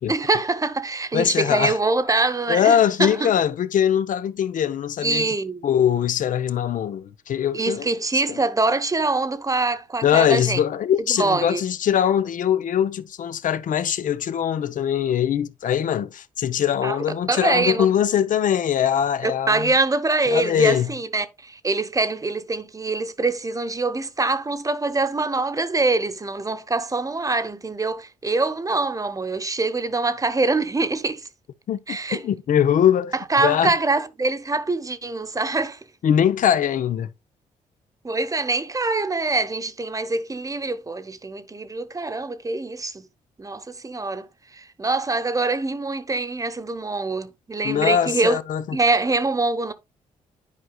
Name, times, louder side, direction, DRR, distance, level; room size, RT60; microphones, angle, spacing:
voice 1, 0.1-3.3 5.0-5.7 7.5-10.6 11.1-11.6 16.8-17.0 17.3-17.9 19.2-31.3 31.9-32.2 33.3-35.8 38.0-43.0 43.4-44.3 44.5-48.4 48.7-49.7, right 3 dB, 25° right, 1.0 m, -24 dB
voice 2, 1.1-1.8 2.5-5.3 5.6-7.9 8.1-8.4 10.0-19.7 20.3-20.9 31.7-33.7 36.0-37.1 47.6-48.8, left 9 dB, 65° left, 0.7 m, -22 dB
10.5 x 4.8 x 2.2 m
supercardioid pair, 65°, 15 cm